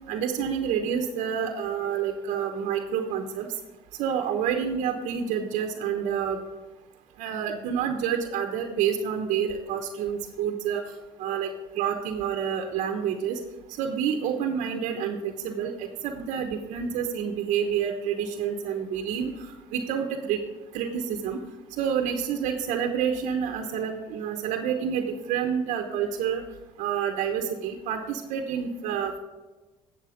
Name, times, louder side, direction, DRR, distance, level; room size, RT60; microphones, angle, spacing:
voice 1, 0.1-3.5 4.0-6.4 7.2-10.8 11.2-13.4 13.8-20.4 20.7-21.4 21.8-26.4 26.8-29.2, right 8 dB, 80° right, 4 dB, 1.0 m, -28 dB
11.0 x 7.6 x 5.1 m, 1.2 s
cardioid pair, 95°, 12 cm